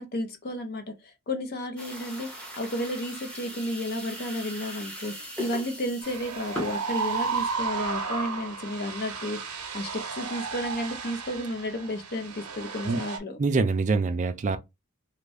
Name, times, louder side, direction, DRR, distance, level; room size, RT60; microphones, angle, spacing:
voice 1, 0.0-2.3 2.6-9.4 9.7-13.4, left 1 dB, 45° left, 0.7 m, -32 dB
sound 1, 1.8-7.5, equal, 5° left, 0.8 m, -40 dB
sound 2, 6.0-13.2, right 5 dB, 90° right, 0.8 m, -33 dB
voice 2, 13.4-14.6, right 3 dB, 35° right, 0.4 m, -24 dB
2.6 x 2.4 x 3.3 m
head